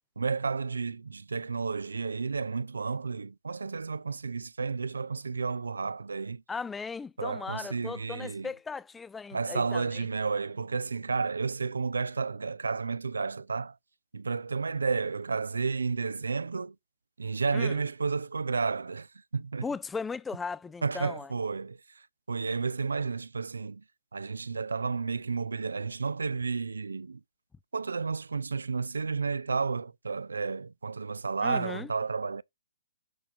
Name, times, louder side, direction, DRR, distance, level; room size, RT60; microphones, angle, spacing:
voice 1, 0.2-6.4 7.2-8.5 9.3-13.8 14.1-16.7 17.2-19.1 19.3-19.7 20.8-21.8 22.3-23.8 24.1-27.2 27.7-32.4, right 4 dB, 80° right, 0.5 m, -31 dB
voice 2, 6.5-10.1 17.5-17.8 19.6-21.3 31.4-31.9, left 5 dB, 10° left, 0.4 m, -37 dB
11.0 x 4.1 x 4.7 m
figure-of-eight pair, 135°, 0 cm